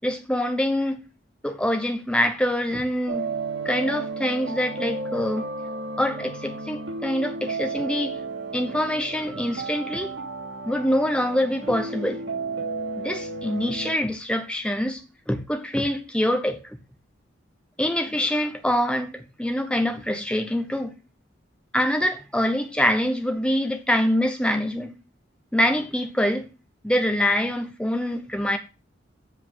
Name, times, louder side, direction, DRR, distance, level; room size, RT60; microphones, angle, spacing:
voice 1, 0.0-1.0 1.4-3.3 3.6-5.5 6.0-8.2 8.5-10.1 10.7-12.2 13.0-15.0 15.3-16.8 17.8-20.9 21.7-24.9 25.5-26.4 26.8-28.6, left 1 dB, 5° left, 1.0 m, -25 dB
sound 1, 3.1-13.9, right 3 dB, 75° right, 2.9 m, -33 dB
7.5 x 5.3 x 5.6 m
head